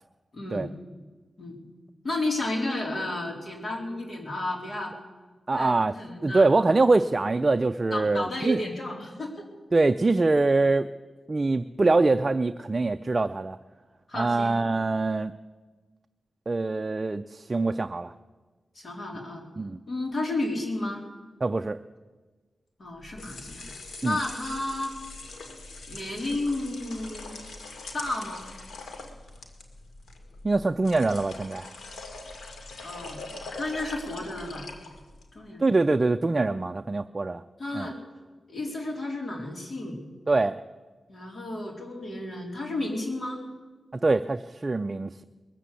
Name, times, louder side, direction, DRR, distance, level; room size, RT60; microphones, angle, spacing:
voice 1, 0.3-0.7 1.4-1.6 2.0-4.9 5.5-6.5 7.9-9.5 14.1-14.5 18.8-19.4 19.9-21.0 22.8-23.6 24.0-24.9 25.9-27.4 27.9-28.4 32.8-33.2 33.6-34.7 35.3-35.7 37.6-38.0 38.5-40.0 41.1-43.4, left 2 dB, 55° left, 0 dB, 3.7 m, -32 dB
voice 2, 5.5-5.9 6.2-8.6 9.7-10.9 11.3-13.6 14.1-15.3 16.5-18.1 19.6-19.8 21.4-21.8 24.0-24.2 30.4-31.7 35.6-37.4 37.7-37.9 40.3-40.6 43.9-45.2, right 3 dB, 35° right, 8 dB, 0.4 m, -24 dB
sound 1, 23.0-35.3, left 3 dB, 85° left, 2.0 m, -42 dB
21.0 x 7.5 x 8.3 m, 1.3 s
wide cardioid pair, 80°, 0 cm